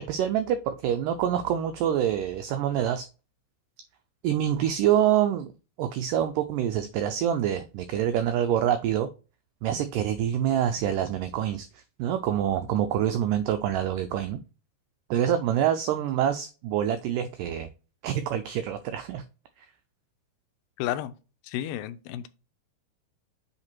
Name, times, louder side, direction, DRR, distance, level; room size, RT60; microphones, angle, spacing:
voice 1, 0.1-3.1 4.2-5.5 5.8-9.1 9.6-11.7 12.0-14.4 15.1-17.7 18.0-19.2 19.6-19.7, right 10 dB, 85° right, 1.9 m, -26 dB
voice 2, 20.8-21.1 21.4-22.3, left 12 dB, 80° left, 2.2 m, -31 dB
7.8 x 3.3 x 4.4 m
omnidirectional pair, 4.4 m